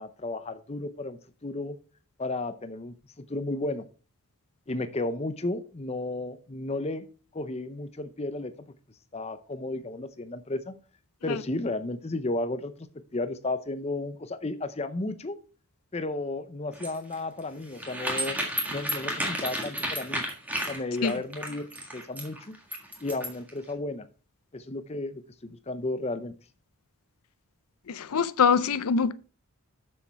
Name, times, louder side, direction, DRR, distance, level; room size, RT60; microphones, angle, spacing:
voice 1, 0.0-1.8 2.2-3.9 4.7-7.1 7.3-8.7 9.1-10.7 11.2-12.9 13.1-15.4 15.9-18.4 18.7-20.2 20.7-21.7 21.9-22.6 23.0-24.1 24.5-26.3, left 2 dB, 30° left, 0.6 m, -33 dB
sound 1, 16.7-23.5, equal, 5° right, 1.7 m, -32 dB
voice 2, 27.9-29.1, left 6 dB, 80° left, 0.5 m, -23 dB
7.1 x 6.4 x 4.6 m
head